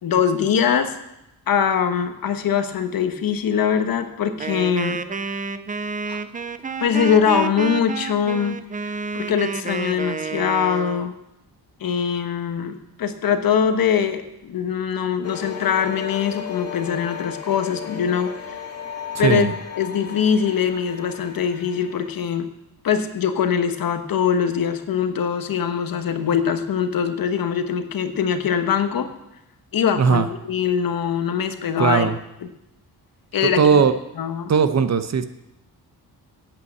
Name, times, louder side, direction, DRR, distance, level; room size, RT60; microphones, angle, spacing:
voice 1, 0.0-0.9 1.5-5.0 6.1-6.2 6.8-8.6 9.1-11.1 11.8-18.3 19.2-19.5 19.8-22.5 22.8-29.1 29.7-32.1 33.3-33.6 34.2-34.5, left 7 dB, 65° left, 8 dB, 1.2 m, -22 dB
Wind instrument woodwind instrument, 4.4-11.1, right 5 dB, 20° right, 0.6 m, -29 dB
sound 1, 15.2-22.1, left 8 dB, 40° left, 2.0 m, -35 dB
voice 2, 19.2-19.5 30.0-30.3 31.8-32.2 33.4-33.9 34.5-35.2, right 6 dB, 45° right, 11 dB, 0.9 m, -18 dB
8.6 x 8.4 x 7.8 m, 0.87 s
cardioid pair, 105°, 38 cm